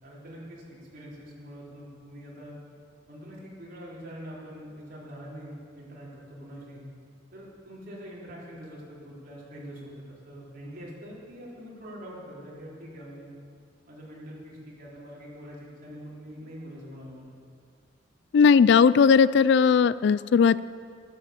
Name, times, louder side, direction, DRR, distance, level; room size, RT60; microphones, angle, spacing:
voice 1, 0.0-2.6 3.1-6.9 7.3-13.3 13.9-17.3, equal, 50° right, -5 dB, 3.9 m, -44 dB
voice 2, 18.3-20.6, left 6 dB, 60° left, 17 dB, 0.3 m, -18 dB
13.0 x 11.0 x 7.7 m, 2.2 s
head